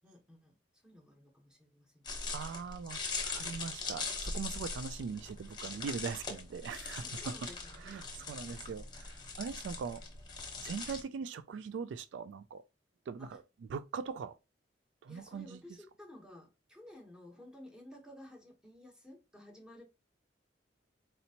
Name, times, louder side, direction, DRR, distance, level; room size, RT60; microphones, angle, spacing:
voice 1, 0.0-2.3 7.0-8.1 8.5-8.6 9.5-9.6 13.2-13.4 15.1-19.8, left 1 dB, 5° right, 1.0 m, -54 dB
sound 1, 2.0-11.0, left 4 dB, 25° left, 1.0 m, -41 dB
voice 2, 2.3-10.0 10.6-12.6 13.1-14.4 15.0-15.6, right 5 dB, 75° right, 0.3 m, -41 dB
4.2 x 2.9 x 2.8 m
head